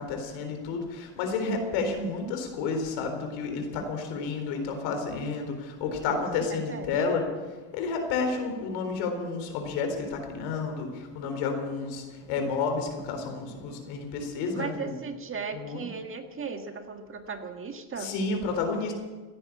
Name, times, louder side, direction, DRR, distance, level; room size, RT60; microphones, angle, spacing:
voice 1, 0.0-7.3 7.7-15.0 15.5-15.9 18.0-18.9, left 4 dB, 85° left, 5 dB, 4.0 m, -31 dB
voice 2, 6.1-7.1 14.5-18.1, right 5 dB, 30° right, 5 dB, 1.7 m, -37 dB
16.0 x 10.5 x 8.4 m, 1.3 s
cardioid pair, 125°, 44 cm